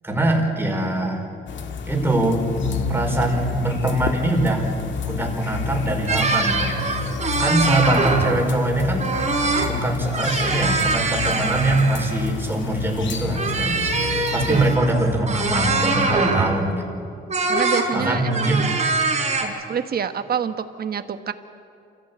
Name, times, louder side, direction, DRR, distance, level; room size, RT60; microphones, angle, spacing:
voice 1, 0.0-1.3 1.9-2.5 2.9-4.7 5.1-6.8 7.4-9.1 9.6-13.9 14.3-16.8 17.9-18.7, right 1 dB, 10° right, 1 dB, 4.8 m, -23 dB
sound 1, 1.5-14.8, left 5 dB, 70° left, 1.9 m, -34 dB
sound 2, 2.6-16.2, left 4 dB, 85° left, 4.6 m, -31 dB
sound 3, 6.1-8.5 9.0-9.7 10.0-12.3 13.3-16.6 17.3-17.9 18.2-19.4, right 3 dB, 35° right, 4.5 m, -23 dB
voice 2, 17.5-18.8 19.4-21.3, right 7 dB, 50° right, 9 dB, 1.3 m, -27 dB
28.0 x 15.0 x 8.4 m, 2.5 s
cardioid pair, 90°, 20 cm